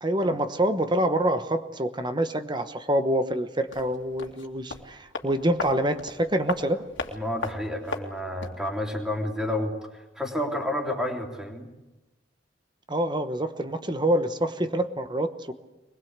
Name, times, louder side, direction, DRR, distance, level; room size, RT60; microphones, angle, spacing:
voice 1, 0.0-6.8 12.9-15.5, right 1 dB, 25° right, 9 dB, 1.0 m, -26 dB
sound 1, 3.7-8.7 8.9-9.0, left 3 dB, 85° left, 2.5 m, -37 dB
voice 2, 7.1-11.7, left 1 dB, 5° right, 1 dB, 3.2 m, -30 dB
22.5 x 21.0 x 8.1 m, 1.0 s
head